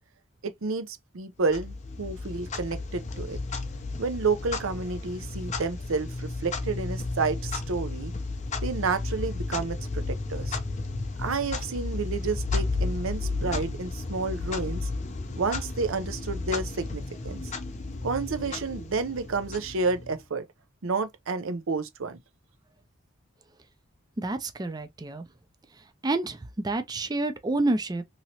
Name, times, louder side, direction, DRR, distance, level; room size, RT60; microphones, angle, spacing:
voice 1, 0.4-3.4 4.0-8.1 8.6-10.6 11.2-14.9 15.4-17.4 18.0-20.5 20.8-22.2, right 4 dB, 80° right, 0.6 m, -30 dB
Clock, 1.5-20.2, left 3 dB, 35° left, 0.6 m, -33 dB
voice 2, 24.2-25.2 26.0-26.4 26.6-28.0, right 2 dB, 20° right, 0.4 m, -28 dB
2.9 x 2.8 x 2.8 m
head